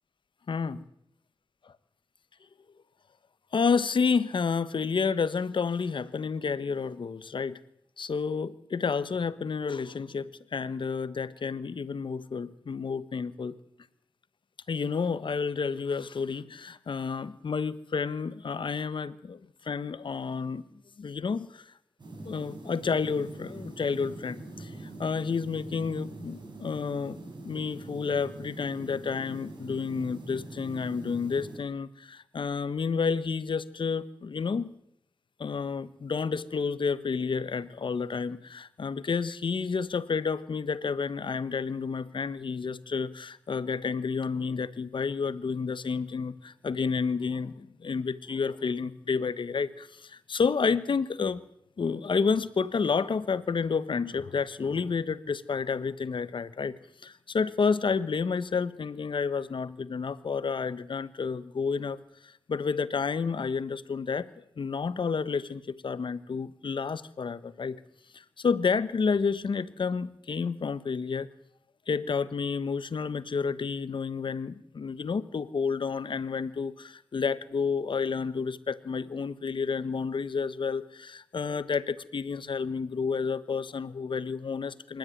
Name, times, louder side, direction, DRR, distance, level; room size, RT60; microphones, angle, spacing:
voice 1, 0.5-0.8 3.5-7.6 8.0-13.5 14.7-19.4 19.6-20.6 21.0-21.6 22.2-24.7 25.0-27.2 27.4-34.7 35.4-51.4 51.8-56.8 57.0-62.0 62.5-67.8 68.4-71.3 71.9-85.0, left 5 dB, 60° left, 13 dB, 1.4 m, -30 dB
sound 1, 22.0-31.6, right 2 dB, 55° right, 7.1 m, -43 dB
26.5 x 13.0 x 9.5 m, 0.75 s
cardioid pair, 60°, 9 cm